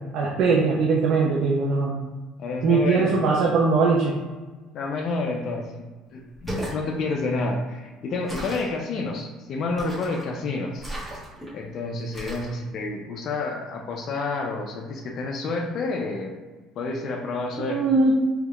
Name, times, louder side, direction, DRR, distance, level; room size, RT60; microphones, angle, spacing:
voice 1, 0.1-1.9 2.6-4.2 17.6-18.2, right 4 dB, 60° right, -2 dB, 0.5 m, -21 dB
voice 2, 2.4-3.1 4.7-5.8 6.1-10.9 11.5-16.4 16.8-17.9, left 3 dB, 50° left, 1 dB, 0.4 m, -29 dB
sound 1, 6.3-6.8 8.3-8.7 9.8-10.3 10.8-11.5 12.1-12.5, right 1 dB, 5° right, 1.2 m, -35 dB
3.4 x 3.0 x 2.3 m, 1.3 s
cardioid pair, 120°, 0 cm